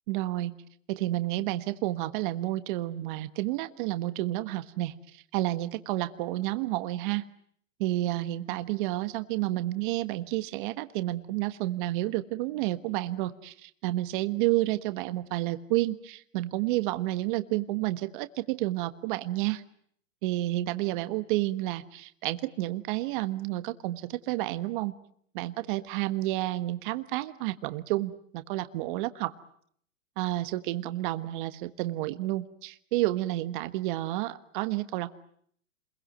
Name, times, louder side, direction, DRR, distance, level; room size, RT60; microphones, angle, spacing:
voice 1, 0.1-0.6 0.9-7.2 7.8-19.6 20.2-24.9 25.3-29.3 30.2-35.1, right 16 dB, 40° right, 12 dB, 1.4 m, -30 dB
28.0 x 22.5 x 9.2 m, 0.66 s
hypercardioid pair, 140°, 38 cm